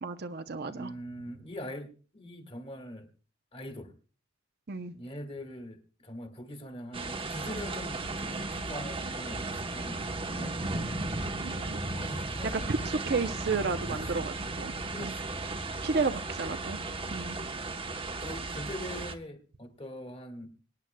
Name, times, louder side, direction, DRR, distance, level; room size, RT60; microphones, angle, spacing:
voice 1, 0.0-0.9 4.7-4.9 11.4-11.8 12.5-15.1 15.8-16.8 17.1-17.4, right 4 dB, 55° right, 9 dB, 0.7 m, -32 dB
voice 2, 0.7-3.1 3.5-3.9 4.9-10.9 11.9-12.8 13.9-14.3 14.9-15.5 16.0-16.3 16.6-17.2 17.6-17.8 18.2-20.6, left 1 dB, 30° left, 7 dB, 2.0 m, -43 dB
sound 1, 6.9-19.1, right 2 dB, 30° right, 0.9 m, -35 dB
24.5 x 9.6 x 2.2 m, 0.36 s
head